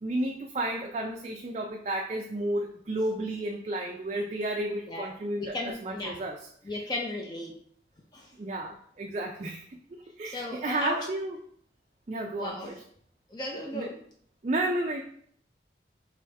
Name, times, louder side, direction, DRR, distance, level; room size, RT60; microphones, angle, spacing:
voice 1, 0.0-6.4 8.4-9.8 10.2-11.4 12.1-12.8 13.7-13.9 14.4-15.0, right 1 dB, 35° right, 1 dB, 0.4 m, -32 dB
voice 2, 5.4-6.2 6.6-7.5 8.1-8.3 10.2-11.0 12.4-12.7 13.3-14.0, left 1 dB, 25° left, -1 dB, 0.5 m, -35 dB
4.9 x 3.0 x 3.3 m, 0.62 s
head